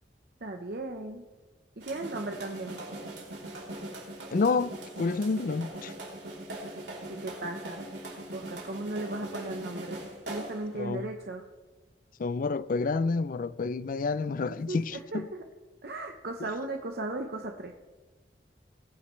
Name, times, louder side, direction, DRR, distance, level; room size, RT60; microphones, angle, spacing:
voice 1, 0.4-1.2 1.8-2.8 7.1-7.8 8.3-10.0 10.3-11.4 14.5-15.4 15.8-17.7, right 2 dB, 65° right, 0.9 m, -36 dB
sound 1, 1.8-10.7, right 1 dB, 85° right, 3.2 m, -41 dB
voice 2, 4.3-5.9 10.7-11.1 12.2-15.3, left 4 dB, 50° left, 0.4 m, -29 dB
20.0 x 9.4 x 3.2 m
head